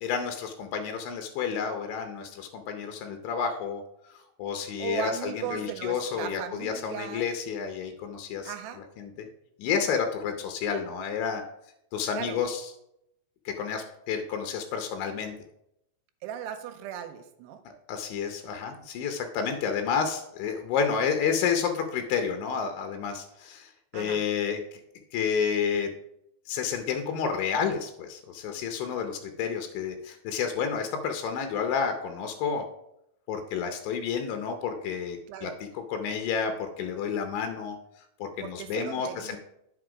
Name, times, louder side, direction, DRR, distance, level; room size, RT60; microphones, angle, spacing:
voice 1, 0.0-3.8 4.4-8.5 9.0-9.3 9.6-11.4 11.9-12.7 13.5-15.3 17.7-24.8 25.1-25.9 26.5-32.7 33.3-37.8 38.2-39.4, left 6 dB, 80° left, 6 dB, 2.1 m, -30 dB
voice 2, 4.8-7.3 8.4-8.8 12.1-12.4 16.2-17.6 23.9-24.2 35.3-35.6 38.4-39.4, right 10 dB, 90° right, 8 dB, 2.8 m, -37 dB
9.9 x 5.1 x 4.8 m, 0.80 s
omnidirectional pair, 4.8 m